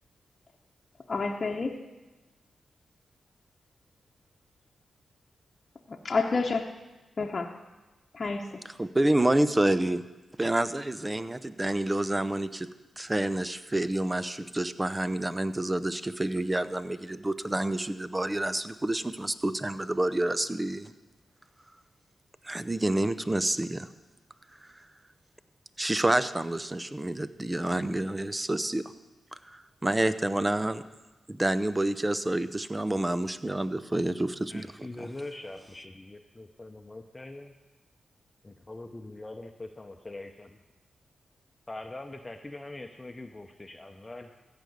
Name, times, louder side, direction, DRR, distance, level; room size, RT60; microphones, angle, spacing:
voice 1, 1.1-1.8 5.9-6.7 7.2-7.5 8.1-8.6, left 4 dB, 50° left, 1 dB, 1.0 m, -29 dB
voice 2, 8.8-10.0 10.4-12.7 13.0-20.9 22.4-23.9 25.8-28.8 29.5-30.8 31.3-35.1, right 1 dB, 20° right, 13 dB, 0.8 m, -28 dB
voice 3, 34.5-37.5 38.4-40.6 41.7-44.3, left 2 dB, 25° left, 4 dB, 0.9 m, -43 dB
15.5 x 5.2 x 8.1 m, 1.1 s
supercardioid pair, 45°, 0 cm